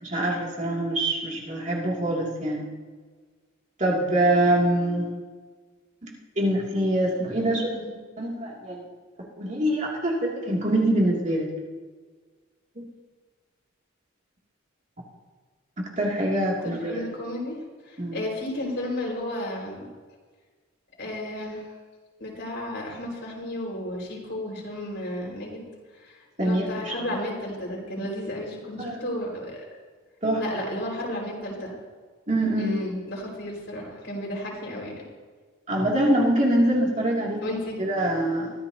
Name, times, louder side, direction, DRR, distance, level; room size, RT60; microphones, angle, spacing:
voice 1, 0.0-2.7 3.8-5.1 6.4-7.7 8.2-8.8 9.4-11.5 12.8-12.9 15.8-17.1 18.0-18.2 26.4-26.9 28.8-29.0 30.2-30.4 32.3-32.8 35.7-38.5, right 1 dB, 35° right, -3 dB, 2.7 m, -24 dB
voice 2, 16.6-17.6 18.1-19.9 21.0-21.6 22.2-25.7 26.4-29.6 30.4-31.7 32.6-34.9 37.4-37.8, left 1 dB, 60° left, -2 dB, 5.2 m, -33 dB
23.0 x 15.0 x 2.9 m, 1.5 s
head